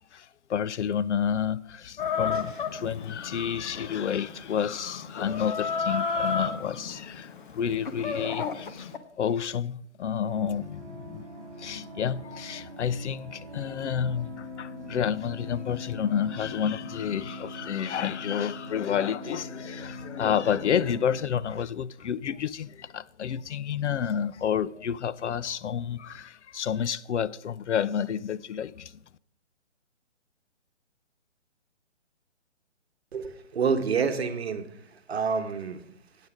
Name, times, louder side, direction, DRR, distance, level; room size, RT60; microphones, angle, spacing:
voice 1, 0.1-8.9 9.2-28.9, left 8 dB, 70° left, 0.5 m, -30 dB
Chicken rooster, 2.0-9.0, left 5 dB, 45° left, 0.9 m, -33 dB
sound 1, 10.2-21.2, left 2 dB, 20° left, 4.9 m, -42 dB
voice 2, 33.1-34.7 35.1-35.8, right 5 dB, 55° right, 1.1 m, -27 dB
9.0 x 8.0 x 5.0 m
hypercardioid pair, 160°, 37 cm